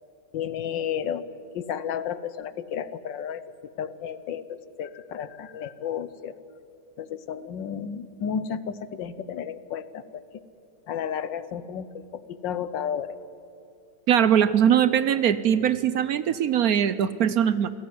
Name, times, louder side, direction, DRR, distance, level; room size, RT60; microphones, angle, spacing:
voice 1, 0.3-1.2 1.5-3.4 3.8-6.3 7.0-10.2 10.9-13.1, left 8 dB, 85° left, 14 dB, 1.7 m, -32 dB
voice 2, 14.1-17.7, right 9 dB, 65° right, 15 dB, 1.1 m, -21 dB
27.0 x 17.0 x 9.5 m, 2.5 s
omnidirectional pair, 1.9 m